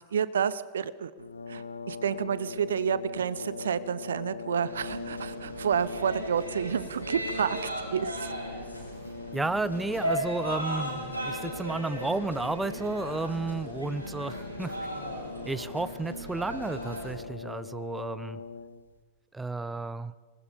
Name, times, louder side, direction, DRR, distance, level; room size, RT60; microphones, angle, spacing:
voice 1, 0.1-1.1 1.5-7.6 7.9-8.3, right 7 dB, 65° right, 17 dB, 0.8 m, -29 dB
Brass instrument, 1.2-19.0, left 4 dB, 75° left, 1.0 m, -42 dB
sound 1, 4.7-17.2, right 1 dB, 80° right, 4.8 m, -37 dB
voice 2, 9.3-15.1 15.5-18.4 19.3-20.1, right 3 dB, 10° right, 17 dB, 0.7 m, -32 dB
26.0 x 19.5 x 5.1 m, 1.4 s
figure-of-eight pair, 90°, 0 cm